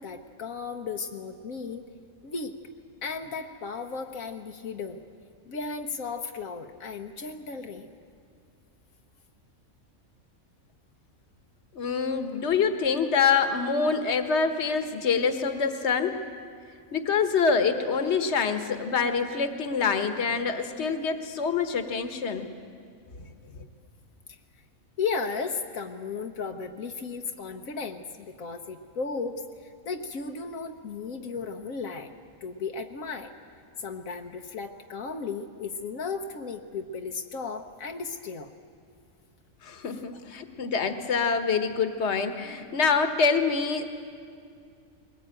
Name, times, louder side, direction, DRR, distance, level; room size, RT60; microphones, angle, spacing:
voice 1, 0.0-1.8 2.2-2.5 3.0-5.0 5.5-7.9 12.3-12.4 24.3-24.4 25.0-29.4 29.9-32.1 32.4-33.3 33.8-38.5 39.9-40.0, left 4 dB, 80° left, 4 dB, 1.4 m, -35 dB
voice 2, 11.7-16.2 16.9-22.5 39.6-43.8, left 5 dB, 55° left, 8 dB, 1.5 m, -26 dB
22.0 x 19.5 x 9.0 m, 2.2 s
omnidirectional pair, 1.4 m